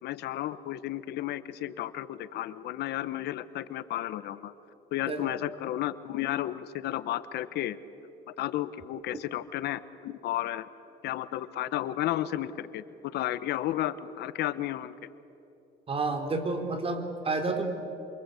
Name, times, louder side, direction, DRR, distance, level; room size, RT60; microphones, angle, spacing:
voice 1, 0.0-4.5 4.9-7.8 8.4-10.7 11.0-14.9, left 13 dB, 75° left, 14 dB, 1.1 m, -33 dB
voice 2, 15.9-17.6, right 3 dB, 35° right, 6 dB, 3.6 m, -30 dB
28.0 x 24.0 x 8.4 m, 2.8 s
cardioid pair, 110°, 17 cm